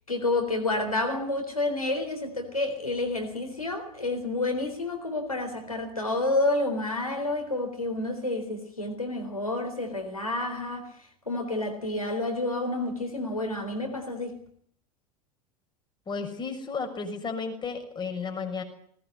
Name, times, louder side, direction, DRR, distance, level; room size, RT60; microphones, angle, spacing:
voice 1, 0.1-14.4, left 2 dB, 85° left, 3.9 m, -29 dB
voice 2, 16.1-18.6, left 5 dB, 25° left, 6.6 m, -33 dB
20.0 x 19.5 x 9.7 m
figure-of-eight pair, 75°, 18 cm